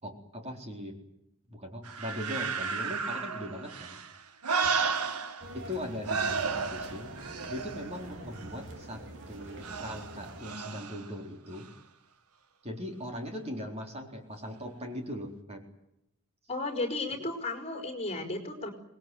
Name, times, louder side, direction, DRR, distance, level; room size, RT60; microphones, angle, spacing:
voice 1, 0.0-1.0 1.5-4.0 5.5-7.1 7.5-9.0 9.3-11.7 12.6-15.6, left 1 dB, 30° right, 3 dB, 4.0 m, -39 dB
sound 1, 1.8-5.8 6.0-8.6 9.6-11.1 11.6-11.7, right 5 dB, 90° right, 1.7 m, -33 dB
sound 2, 5.4-10.5, right 1 dB, 55° right, 3.6 m, -46 dB
voice 2, 16.5-18.7, left 2 dB, 25° left, 6 dB, 4.8 m, -34 dB
26.0 x 20.5 x 9.3 m, 0.83 s
head